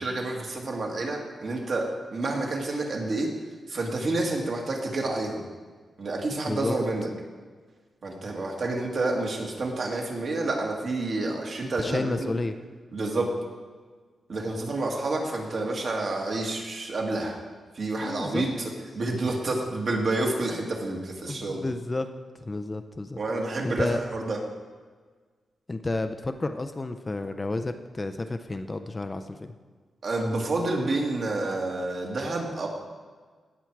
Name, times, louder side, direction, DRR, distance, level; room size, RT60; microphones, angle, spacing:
voice 1, 0.0-3.3 3.7-5.4 6.0-7.1 8.0-12.4 12.9-13.3 14.3-17.4 17.7-21.6 23.2-24.4 30.0-32.7, right 2 dB, 50° right, 0 dB, 1.8 m, -29 dB
voice 2, 11.8-12.5 18.0-18.4 21.3-22.1 22.5-23.2 23.6-24.0 25.7-29.5, left 2 dB, 20° left, 8 dB, 0.4 m, -31 dB
17.5 x 6.0 x 4.6 m, 1.5 s
wide cardioid pair, 150°, 0 cm